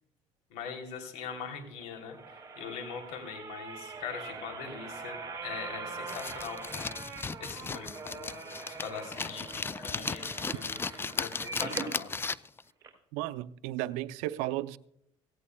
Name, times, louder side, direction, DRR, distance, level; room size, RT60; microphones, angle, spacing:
voice 1, 0.5-10.8 11.1-12.1, left 6 dB, 80° left, 3.0 m, -42 dB
sound 1, 1.8-12.0 12.4-12.5 12.8-12.9, right 4 dB, 25° right, 4.5 m, -43 dB
sound 2, 6.1-12.6, left 4 dB, 20° left, 0.4 m, -36 dB
voice 2, 13.1-14.8, right 16 dB, 85° right, 0.5 m, -34 dB
17.0 x 16.5 x 2.2 m
supercardioid pair, 90°, 12 cm